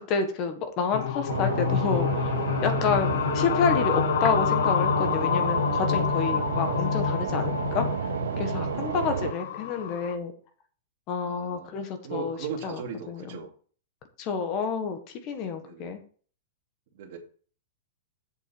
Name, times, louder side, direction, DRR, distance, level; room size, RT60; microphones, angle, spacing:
voice 1, 0.0-2.3 2.6-7.9 8.4-10.3 11.1-12.4 12.6-13.4 14.2-16.0, left 5 dB, 25° left, 7 dB, 1.5 m, -29 dB
sound 1, 0.9-10.1, left 9 dB, 50° left, 0.8 m, -28 dB
sound 2, 1.3-9.3, right 8 dB, 80° right, 0.7 m, -31 dB
voice 2, 8.9-9.3 11.2-11.7 12.0-13.5 15.5-16.0 16.9-17.2, right 6 dB, 40° right, 0 dB, 2.8 m, -38 dB
8.3 x 7.2 x 4.6 m, 0.42 s
supercardioid pair, 180°, 0 cm